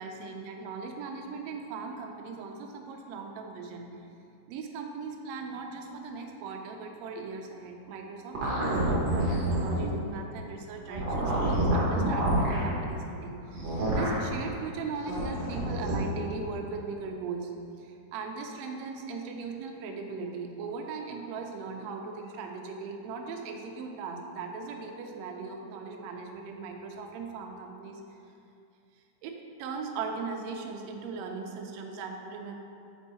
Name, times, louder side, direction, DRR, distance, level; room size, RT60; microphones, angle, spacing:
voice 1, 0.0-3.9 4.5-17.5 17.8-28.0 29.2-32.5, right 4 dB, 90° right, 2 dB, 1.5 m, -39 dB
sound 1, 8.3-9.9 10.9-12.6 13.5-14.2 15.0-16.0, right 1 dB, 60° right, 1.2 m, -27 dB
5.1 x 4.5 x 4.2 m, 2.6 s
omnidirectional pair, 3.6 m